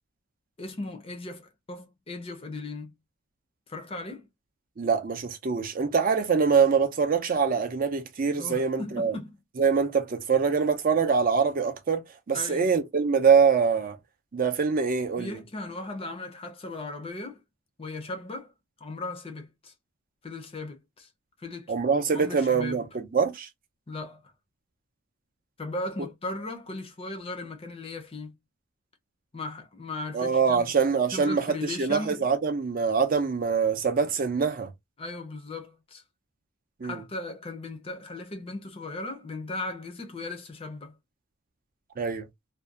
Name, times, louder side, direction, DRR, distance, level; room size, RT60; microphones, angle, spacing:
voice 1, 0.6-2.9 3.7-4.3 8.4-9.4 12.3-12.7 15.2-17.4 17.8-18.5 18.8-19.7 20.2-21.1 21.4-21.8 22.1-22.8 23.9-24.3 25.6-28.3 29.3-32.2 35.0-36.0 36.8-41.0, left 2 dB, 25° left, 0.5 m, -37 dB
voice 2, 4.8-9.1 9.6-14.0 14.3-15.4 21.7-23.5 30.1-34.7 36.8-37.0 42.0-42.3, right 5 dB, 40° right, 0.4 m, -24 dB
2.5 x 2.2 x 2.3 m
head